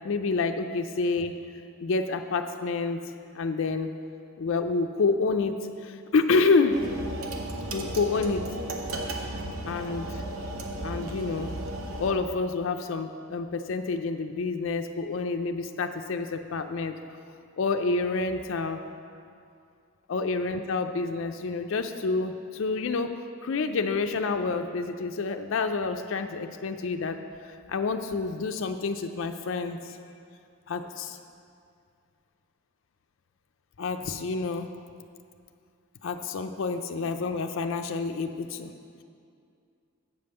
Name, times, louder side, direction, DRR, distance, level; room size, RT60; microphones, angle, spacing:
voice 1, 0.0-1.4 1.8-3.0 3.3-3.9 4.4-6.9 7.7-8.5 9.7-10.2 10.8-11.5 12.0-16.9 17.6-18.8 20.1-23.1 23.4-30.0 30.7-31.2 33.8-34.7 36.0-38.7, left 4 dB, 60° left, 7 dB, 0.4 m, -28 dB
sound 1, 6.7-12.1, right 1 dB, 70° right, 0.8 m, -35 dB
8.0 x 5.3 x 6.7 m, 2.4 s
head